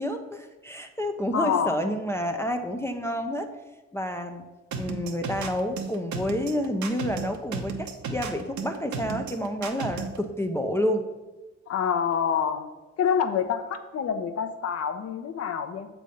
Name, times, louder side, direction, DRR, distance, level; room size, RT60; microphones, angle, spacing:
voice 1, 0.0-3.5 3.9-4.5 4.8-11.0, equal, 10° left, 4 dB, 0.5 m, -29 dB
voice 2, 1.3-1.8 11.7-12.6 13.0-15.9, left 7 dB, 55° left, 8 dB, 0.7 m, -27 dB
sound 1, 4.7-10.2, right 5 dB, 70° right, 0.9 m, -33 dB
7.4 x 3.4 x 5.4 m, 1.2 s
cardioid pair, 90°, 30 cm